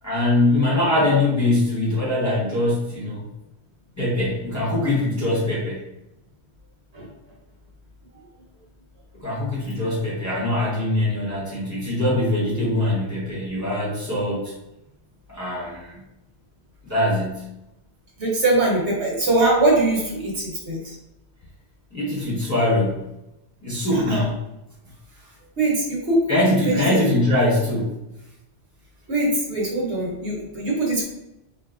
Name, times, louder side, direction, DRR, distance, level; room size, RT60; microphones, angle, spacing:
voice 1, 0.0-3.2 4.0-5.8 9.1-14.5 15.3-16.0 16.8-17.5 21.9-23.1 23.6-24.3 26.3-28.0, left 1 dB, 15° left, -7 dB, 0.8 m, -22 dB
voice 2, 18.2-20.9 23.9-24.2 25.6-26.3 26.6-27.0 29.1-31.0, right 2 dB, 80° right, -3 dB, 1.3 m, -22 dB
3.8 x 2.5 x 2.4 m, 0.91 s
omnidirectional pair, 1.1 m